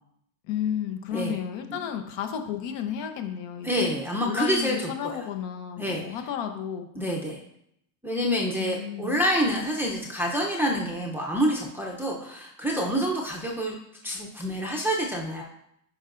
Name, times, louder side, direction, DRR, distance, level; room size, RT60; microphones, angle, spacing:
voice 1, 0.4-3.9 4.2-6.9 8.6-9.2, left 8 dB, 60° left, 6 dB, 0.9 m, -32 dB
voice 2, 3.6-4.8 5.0-5.2 5.8-6.0 7.0-7.4 8.0-13.7 14.0-15.4, equal, 5° right, -2 dB, 0.5 m, -27 dB
10.0 x 5.0 x 2.5 m, 0.74 s
cardioid pair, 145°, 50 cm